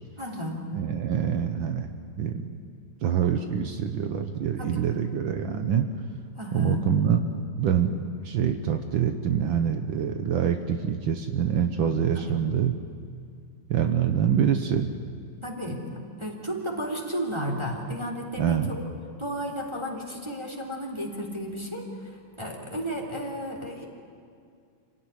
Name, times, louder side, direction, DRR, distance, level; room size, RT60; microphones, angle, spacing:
voice 1, 0.2-0.6 4.6-4.8 6.4-6.8 12.1-12.2 15.4-15.8 16.2-18.9 19.2-21.9 22.4-23.8, equal, 15° right, -1 dB, 3.2 m, -33 dB
voice 2, 0.7-1.9 2.2-2.5 3.0-5.9 6.5-7.2 7.6-12.7 13.7-14.9 18.4-18.7, right 8 dB, 70° right, 6 dB, 1.8 m, -25 dB
26.0 x 17.5 x 9.9 m, 2.3 s
omnidirectional pair, 2.3 m